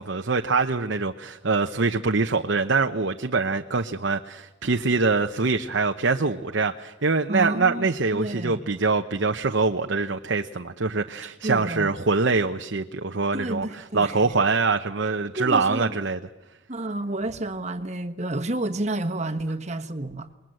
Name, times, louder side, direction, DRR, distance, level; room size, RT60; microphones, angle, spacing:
voice 1, 0.0-16.2, right 4 dB, 60° right, 0.8 m, -24 dB
voice 2, 7.3-8.7 11.2-12.0 13.3-14.4 15.4-16.0 16.7-20.3, right 1 dB, 35° right, 1.3 m, -30 dB
28.0 x 21.0 x 7.7 m
head